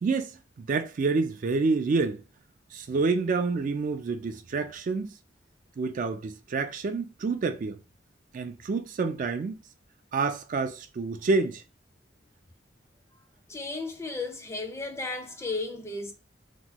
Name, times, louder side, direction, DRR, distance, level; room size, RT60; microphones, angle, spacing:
voice 1, 0.0-2.2 2.7-5.1 5.8-7.8 8.3-9.6 10.1-11.6, right 4 dB, 45° right, 0.3 m, -28 dB
voice 2, 13.5-16.1, left 3 dB, 15° left, 0.5 m, -34 dB
2.9 x 2.2 x 3.8 m
head